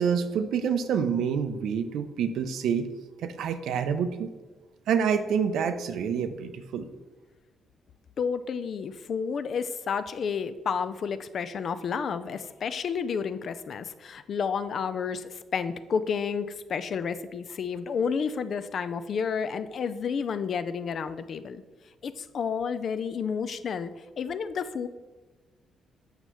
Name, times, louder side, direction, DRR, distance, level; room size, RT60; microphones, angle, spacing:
voice 1, 0.0-2.9 3.2-4.3 4.9-6.9, right 7 dB, 80° right, 9 dB, 0.5 m, -27 dB
voice 2, 8.2-21.6 22.0-23.9 24.2-24.9, left 6 dB, 50° left, 12 dB, 0.4 m, -31 dB
8.0 x 5.5 x 3.0 m, 1.3 s
cardioid pair, 135°, 0 cm